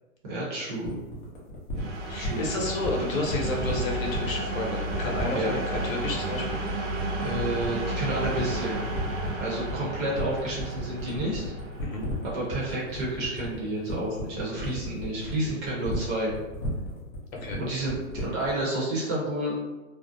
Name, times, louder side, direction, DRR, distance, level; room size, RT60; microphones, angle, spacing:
voice 1, 0.3-1.0 2.1-2.5 5.3-5.6 7.2-8.9 9.4-11.4 12.2-16.3 17.6-19.5, right 1 dB, 25° right, -5 dB, 0.8 m, -30 dB
sound 1, 0.8-18.6, left 1 dB, 25° left, 0.6 m, -35 dB
sound 2, 1.7-13.4, right 2 dB, 60° right, 0.7 m, -33 dB
voice 2, 2.1-6.6 11.8-12.0 17.4-17.6, left 2 dB, 75° left, -1 dB, 0.9 m, -31 dB
2.4 x 2.1 x 2.6 m, 1.1 s
hypercardioid pair, 140°, 41 cm